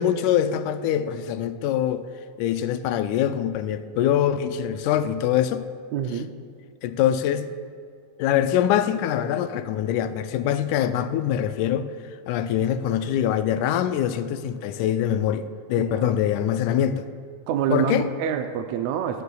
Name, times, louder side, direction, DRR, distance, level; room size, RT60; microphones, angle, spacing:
voice 1, 0.0-2.1 2.4-5.7 6.8-7.5 8.2-11.9 12.3-17.1 17.7-18.1, left 10 dB, 80° left, 2.0 m, -24 dB
voice 2, 5.9-6.3 15.9-16.1 17.5-19.2, right 8 dB, 75° right, 1.7 m, -26 dB
17.5 x 14.5 x 2.3 m
omnidirectional pair, 3.6 m